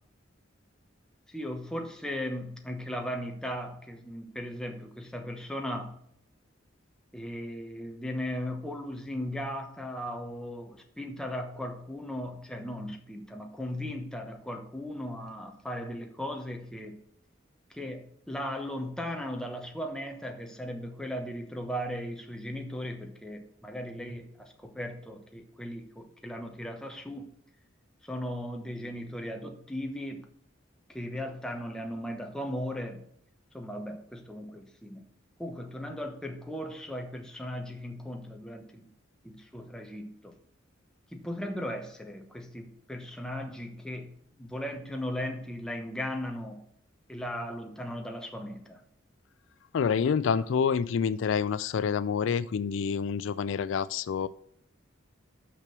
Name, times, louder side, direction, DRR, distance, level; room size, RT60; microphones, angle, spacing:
voice 1, 1.3-6.0 7.1-17.0 17.7-27.3 28.0-30.3 30.9-33.1 33.5-35.0 35.4-38.9 39.2-40.3 41.1-46.6 47.1-48.8, equal, 5° left, 1.0 m, -37 dB
voice 2, 49.7-54.3, left 6 dB, 70° left, 0.3 m, -27 dB
6.1 x 5.9 x 6.0 m
head